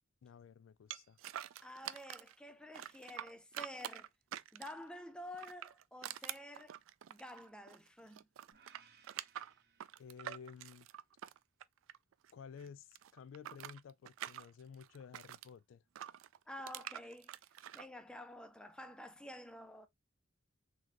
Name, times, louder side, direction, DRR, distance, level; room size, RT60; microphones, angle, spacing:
voice 1, 0.2-1.2 10.0-10.9 12.3-15.8, left 6 dB, 75° left, 0.3 m, -53 dB
sound 1, 0.9-2.3 2.7-4.9 5.3-7.9 8.1-12.3 12.6-15.5 16.0-17.9, right 11 dB, 80° right, 0.3 m, -47 dB
voice 2, 1.6-4.1 4.5-6.8 7.1-8.3 16.5-17.4 17.7-19.9, left 1 dB, 5° left, 0.5 m, -50 dB
sound 2, 8.5-10.7, right 6 dB, 55° right, 0.9 m, -67 dB
3.8 x 3.3 x 2.9 m
head